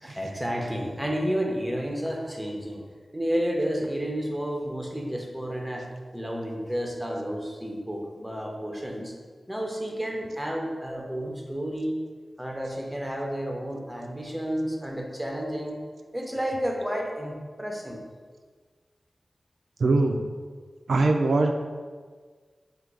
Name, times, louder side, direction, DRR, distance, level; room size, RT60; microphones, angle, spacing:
voice 1, 0.0-2.8 3.1-5.9 6.1-9.1 9.5-12.0 12.4-15.8 16.1-18.0, equal, 5° right, 0 dB, 0.5 m, -31 dB
voice 2, 19.8-20.2 20.9-21.5, right 3 dB, 85° right, 3 dB, 0.3 m, -21 dB
3.7 x 2.2 x 4.5 m, 1.5 s
wide cardioid pair, 110°, 0 cm